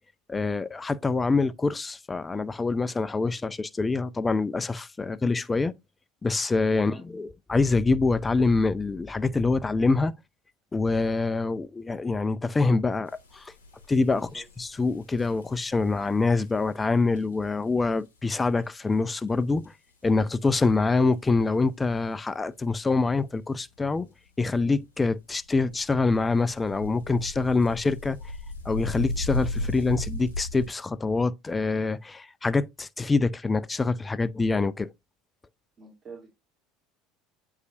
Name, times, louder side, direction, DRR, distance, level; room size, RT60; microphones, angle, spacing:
voice 1, 0.3-5.7 6.2-10.1 10.7-13.5 13.9-19.7 20.0-24.1 24.4-28.2 28.7-34.9, left 3 dB, 20° left, 0.5 m, -25 dB
sound 1, 13.1-18.3 18.6-19.7 19.9-20.0 20.3-20.4 20.6-20.8 21.1-21.3 21.5-21.6 22.4-22.5 23.4-23.6 24.3-24.4 24.8-25.0 25.3-30.7, left 2 dB, 80° left, 1.7 m, -37 dB
voice 2, 14.1-14.4 35.8-36.3, right 4 dB, 35° right, 2.7 m, -46 dB
8.0 x 4.8 x 2.6 m
figure-of-eight pair, 70°, 0 cm